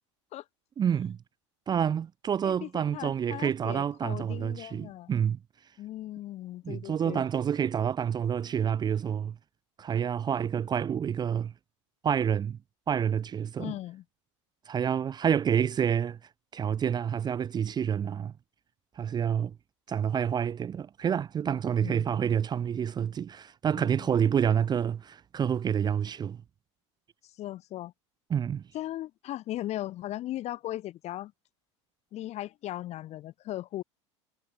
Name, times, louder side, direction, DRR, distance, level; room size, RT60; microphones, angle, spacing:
voice 1, 0.8-1.2 1.7-5.4 6.6-9.3 9.8-11.5 12.0-12.6 12.9-13.7 14.7-16.2 16.5-18.3 19.0-19.5 19.9-26.4 28.3-28.6, right 8 dB, 25° right, 0.6 m, -28 dB
voice 2, 2.4-5.1 5.8-7.2 13.6-14.0 21.8-22.2 23.7-24.3 27.4-27.9 28.7-31.3 32.1-33.8, left 14 dB, 45° left, 1.0 m, -38 dB
hypercardioid pair, 90°, 16 cm